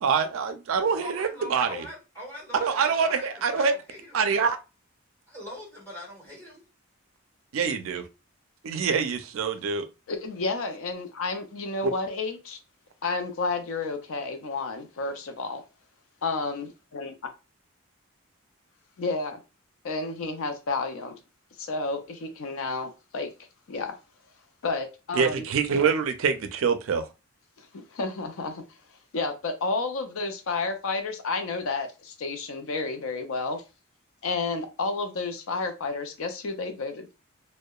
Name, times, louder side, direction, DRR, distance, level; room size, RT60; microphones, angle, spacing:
voice 1, 0.0-1.9 2.6-3.7 4.1-4.6 7.5-8.0 8.6-9.9 11.8-11.9 25.1-27.1, right 6 dB, 70° right, 0.4 m, -25 dB
voice 2, 1.0-4.2 5.3-6.6, equal, 10° left, 1.3 m, -42 dB
voice 3, 10.1-12.6 13.0-15.6 16.2-17.1 19.0-19.4 19.8-21.2 21.6-23.3 23.7-24.0 24.6-25.4 27.6-28.6 29.1-33.6 34.2-37.2, left 3 dB, 70° left, 0.4 m, -31 dB
2.7 x 2.1 x 2.2 m
head